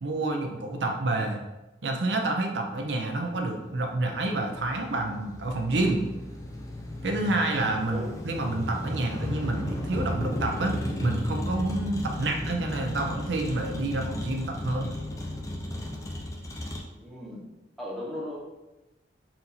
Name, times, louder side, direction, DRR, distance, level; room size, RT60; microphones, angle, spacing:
voice 1, 0.0-1.4 1.8-6.0 7.0-15.0, right 2 dB, 85° right, 3 dB, 0.6 m, -28 dB
Motor vehicle (road), 2.7-16.8, left 1 dB, 20° left, 0.5 m, -34 dB
voice 2, 16.9-17.5 17.8-18.4, left 1 dB, ahead, -5 dB, 0.9 m, -37 dB
4.3 x 2.6 x 4.1 m, 1.0 s
head